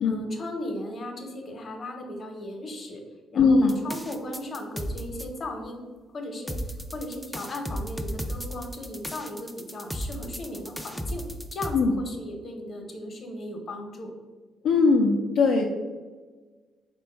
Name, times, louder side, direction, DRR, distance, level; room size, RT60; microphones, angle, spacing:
voice 1, 0.0-3.0 3.3-5.8 6.1-11.2 11.5-14.1, left 1 dB, 45° left, 3 dB, 0.8 m, -37 dB
voice 2, 3.4-3.7 11.7-11.9 14.6-15.6, left 4 dB, 70° left, 0 dB, 0.4 m, -20 dB
sound 1, 3.7-5.2 6.5-11.7, equal, ahead, 0.4 m, -34 dB
4.1 x 2.2 x 4.5 m, 1.4 s
cardioid pair, 90°, 0 cm